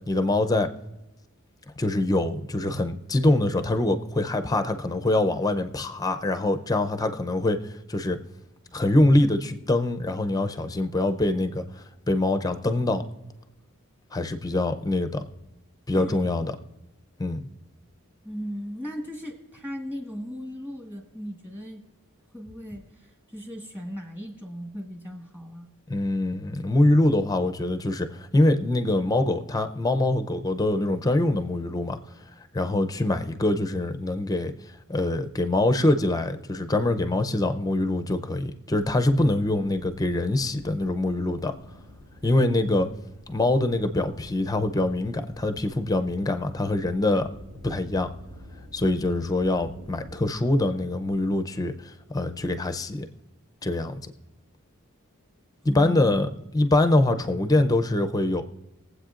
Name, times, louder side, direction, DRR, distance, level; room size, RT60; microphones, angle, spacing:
voice 1, 0.1-0.7 1.8-7.6 7.9-8.2 8.7-13.0 14.1-15.2 15.9-16.5 17.2-17.4 25.9-32.0 32.5-34.5 34.9-41.5 42.2-42.9 43.3-47.3 47.6-48.1 48.7-53.1 53.6-53.9 55.6-56.3 56.5-58.4, left 2 dB, 15° left, 8 dB, 0.5 m, -24 dB
voice 2, 18.2-21.8 22.3-25.7 55.7-56.2, equal, 10° right, 1 dB, 1.6 m, -37 dB
sound 1, 38.7-50.2, left 1 dB, 75° right, 2.6 m, -48 dB
21.5 x 7.9 x 2.5 m, 1.0 s
head